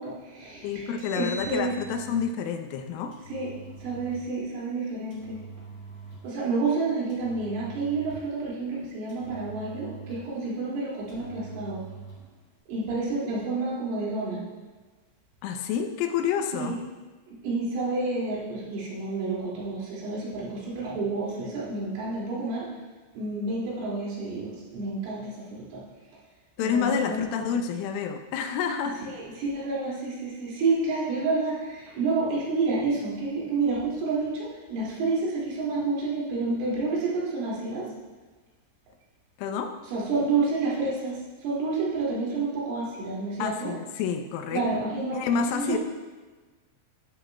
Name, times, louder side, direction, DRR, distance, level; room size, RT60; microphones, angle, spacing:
voice 1, 0.0-1.8 3.3-3.5 3.8-5.4 6.2-11.8 12.7-14.4 16.5-16.8 17.3-22.7 23.1-25.8 26.6-27.2 27.5-27.6 29.0-37.9 39.9-43.7 44.5-45.8, right 3 dB, 80° right, -6 dB, 4.9 m, -29 dB
voice 2, 0.6-3.1 15.4-16.7 26.6-29.0 39.4-39.7 43.4-44.6 45.1-45.8, left 7 dB, 85° left, 6 dB, 3.2 m, -28 dB
Engine, 0.8-2.3 3.1-4.3 5.1-6.4 7.1-8.4 9.1-10.4 11.1-12.3, right 3 dB, 30° left, 2.5 m, -44 dB
12.0 x 10.0 x 2.2 m, 1.3 s
omnidirectional pair, 5.7 m